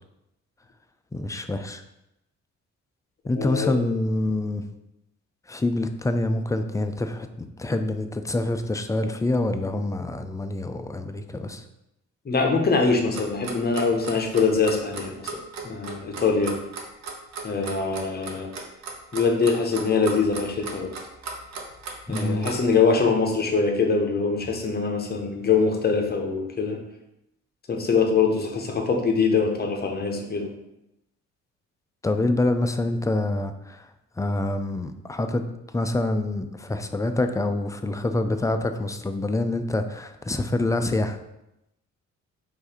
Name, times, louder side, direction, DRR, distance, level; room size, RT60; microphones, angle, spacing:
voice 1, 1.1-1.8 3.3-4.7 5.5-11.6 22.1-22.5 32.0-33.9 34.2-35.4 35.7-41.2, left 2 dB, 10° left, 7 dB, 0.3 m, -26 dB
voice 2, 3.4-3.7 12.2-15.4 15.6-16.5 17.4-18.5 19.1-20.9 22.1-26.8 27.7-30.5, left 4 dB, 30° left, 2 dB, 0.9 m, -23 dB
Clock, 13.1-22.7, right 4 dB, 60° right, 0.9 m, -36 dB
4.6 x 2.6 x 4.3 m, 0.86 s
cardioid pair, 90°, 30 cm